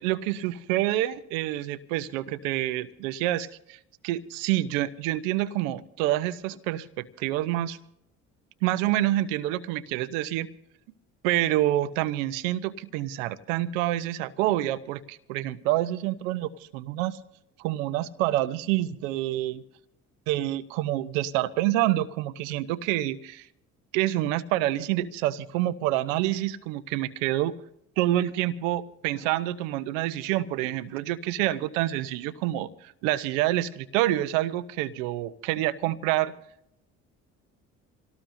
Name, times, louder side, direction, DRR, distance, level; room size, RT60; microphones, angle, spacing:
voice 1, 0.0-7.8 8.6-10.5 11.2-17.2 17.6-19.6 20.3-23.5 23.9-27.5 28.0-36.3, right 14 dB, 85° right, 13 dB, 0.9 m, -27 dB
26.0 x 18.0 x 2.7 m, 0.77 s
hypercardioid pair, 60°, 38 cm